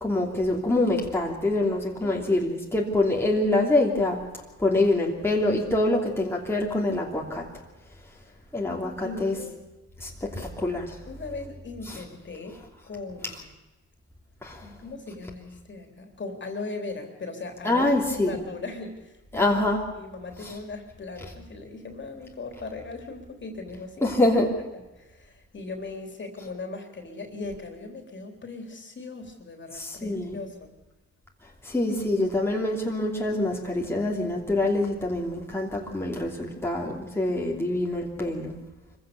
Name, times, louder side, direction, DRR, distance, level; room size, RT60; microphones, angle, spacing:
voice 1, 0.0-4.2 4.6-7.5 8.5-9.4 10.0-10.9 11.9-12.0 14.4-14.6 17.6-18.4 19.3-19.8 20.4-20.5 24.0-24.5 29.7-30.4 31.6-38.6, left 2 dB, 10° left, -2 dB, 3.0 m, -25 dB
voice 2, 2.0-2.4 9.0-9.6 11.1-13.5 14.6-17.8 18.2-19.6 19.9-24.2 24.7-30.7, left 3 dB, 40° left, 4 dB, 3.7 m, -38 dB
24.0 x 15.5 x 7.0 m, 1.1 s
cardioid pair, 90°, 30 cm